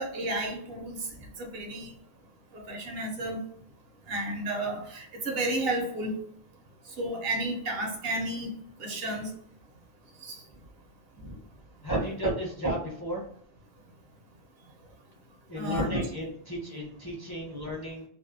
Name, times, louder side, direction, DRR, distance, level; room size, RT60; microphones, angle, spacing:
voice 1, 0.0-1.1 1.4-1.9 2.5-3.4 4.1-6.2 7.0-8.5 8.8-9.3 10.2-10.4 15.6-16.0, right 1 dB, 70° right, 2 dB, 0.8 m, -32 dB
voice 2, 11.8-13.2 15.5-18.0, right 1 dB, 25° left, -5 dB, 0.6 m, -32 dB
2.5 x 2.1 x 2.6 m, 0.64 s
omnidirectional pair, 1.1 m